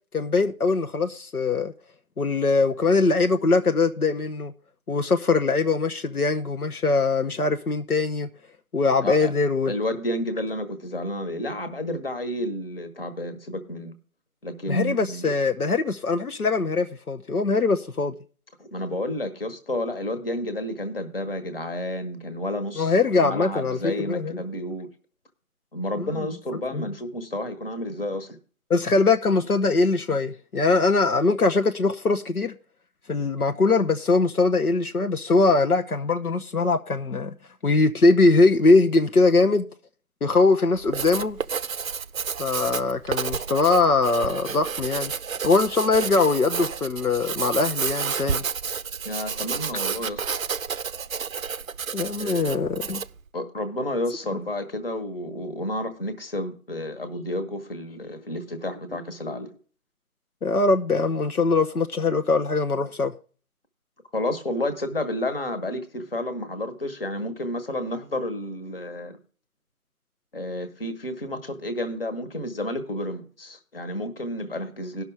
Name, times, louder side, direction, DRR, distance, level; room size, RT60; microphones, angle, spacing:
voice 1, 0.1-1.7 2.2-4.5 4.9-8.3 8.7-9.7 14.7-18.1 22.8-24.4 26.0-26.1 26.7-26.8 28.7-32.5 33.1-37.3 37.6-39.7 40.2-41.4 42.4-45.1 45.4-48.4 51.9-53.0 60.4-63.1, left 3 dB, 75° left, 0.9 m, -22 dB
voice 2, 9.0-9.3 9.7-13.9 14.4-15.3 18.6-23.0 23.2-24.9 25.7-28.4 49.0-50.2 52.2-52.7 53.3-59.6 64.1-69.2 70.3-75.0, left 1 dB, 40° left, 1.4 m, -31 dB
Writing, 40.7-53.2, right 6 dB, 65° right, 0.6 m, -31 dB
18.0 x 6.1 x 3.3 m
figure-of-eight pair, 160°, 44 cm